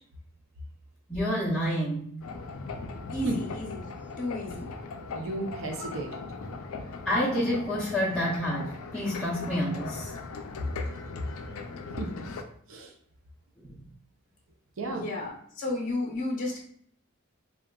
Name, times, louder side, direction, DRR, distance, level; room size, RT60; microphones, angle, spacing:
voice 1, 1.1-2.2 7.1-10.1, equal, ahead, -10 dB, 0.5 m, -28 dB
sound 1, 2.2-12.4, left 4 dB, 75° left, 0.4 m, -39 dB
voice 2, 3.1-3.9 4.2-4.7 14.8-16.6, left 2 dB, 35° left, -2 dB, 0.6 m, -32 dB
voice 3, 5.1-6.2 12.0-12.3 12.7-12.9 14.8-15.1, right 2 dB, 65° right, 2 dB, 0.5 m, -34 dB
3.7 x 2.2 x 2.2 m, 0.62 s
head